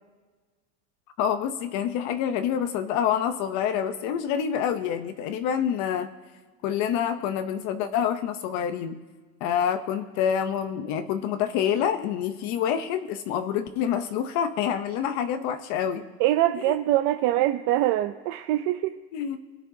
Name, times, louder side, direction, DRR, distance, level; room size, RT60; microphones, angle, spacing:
voice 1, 1.2-6.1 6.6-9.0 9.4-16.0 16.6-16.8 19.1-19.4, left 8 dB, 55° left, 9 dB, 0.7 m, -27 dB
voice 2, 16.2-19.0, right 14 dB, 55° right, 8 dB, 0.5 m, -23 dB
21.5 x 10.0 x 2.7 m, 1.4 s
cardioid pair, 160°, 35 cm